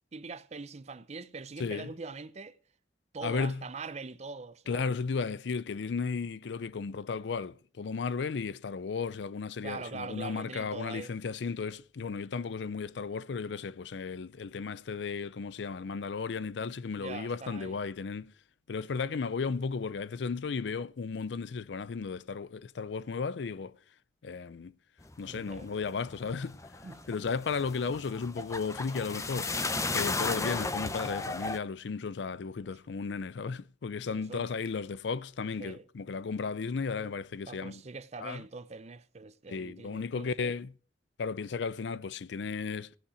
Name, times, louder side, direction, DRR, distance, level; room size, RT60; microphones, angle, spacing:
voice 1, 0.1-2.6 3.1-4.9 9.6-11.1 16.9-17.8 25.2-25.7 26.8-27.1 34.3-34.5 35.6-35.8 37.5-40.5, right 4 dB, 40° right, 0.6 m, -43 dB
voice 2, 1.6-1.9 3.2-3.6 4.7-18.3 18.7-23.7 24.2-24.7 25.2-26.6 27.1-29.6 29.9-37.8 38.2-38.4 39.5-40.7 41.2-43.0, left 5 dB, 80° left, 0.5 m, -34 dB
sound 1, 25.0-31.6, left 3 dB, 20° left, 0.6 m, -35 dB
16.5 x 5.8 x 6.2 m
head